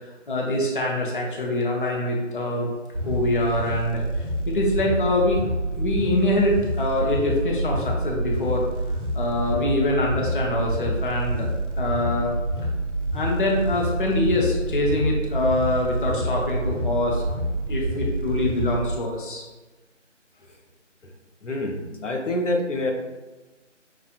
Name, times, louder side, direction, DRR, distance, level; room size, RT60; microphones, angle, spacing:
voice 1, 0.3-2.7 3.0-4.0 4.5-5.4 5.7-8.6 9.1-11.5 11.8-12.3 13.1-17.2 17.7-19.4, left 1 dB, 45° left, -2 dB, 0.6 m, -24 dB
sound 1, 2.9-18.9, right 1 dB, 75° right, 1.1 m, -27 dB
voice 2, 21.4-22.9, left 1 dB, 75° left, 2 dB, 0.8 m, -26 dB
5.8 x 2.4 x 2.4 m, 1.2 s
figure-of-eight pair, 160°, 37 cm